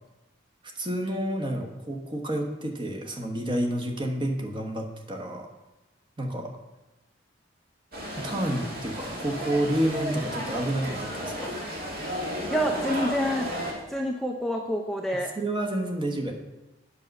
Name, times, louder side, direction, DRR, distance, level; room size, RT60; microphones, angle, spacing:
voice 1, 0.7-5.5 6.2-6.5 8.1-11.5 15.4-16.3, right 1 dB, 25° right, 2 dB, 1.1 m, -29 dB
sound 1, 7.9-13.7, equal, 55° right, 2.1 m, -33 dB
voice 2, 12.5-13.5 13.9-15.3, equal, ahead, 1 dB, 0.5 m, -27 dB
8.6 x 6.5 x 5.3 m, 1.0 s
head